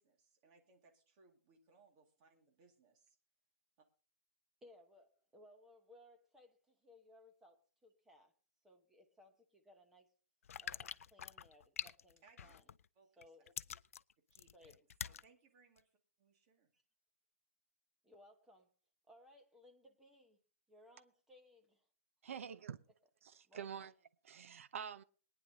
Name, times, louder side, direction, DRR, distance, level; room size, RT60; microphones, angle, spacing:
voice 1, 0.0-3.2 3.8-3.9 12.2-12.5 13.0-13.3 13.7-13.8 14.3-16.7, right 4 dB, 25° right, 2.2 m, -69 dB
voice 2, 4.6-7.6 7.8-8.3 8.6-10.1 10.6-12.7 13.2-13.5 14.5-14.8 16.7-16.8 18.0-18.7 19.1-20.4 20.7-21.9 22.3-22.4 23.4-23.7, left 1 dB, 5° right, 1.1 m, -63 dB
sound 1, 10.4-12.9 13.2-15.3 15.8-15.9, left 8 dB, 80° left, 0.5 m, -46 dB
voice 3, 22.2-22.8 23.2-23.9 24.2-25.0, right 7 dB, 65° right, 0.8 m, -46 dB
22.0 x 9.9 x 2.8 m
hypercardioid pair, 170°, 8 cm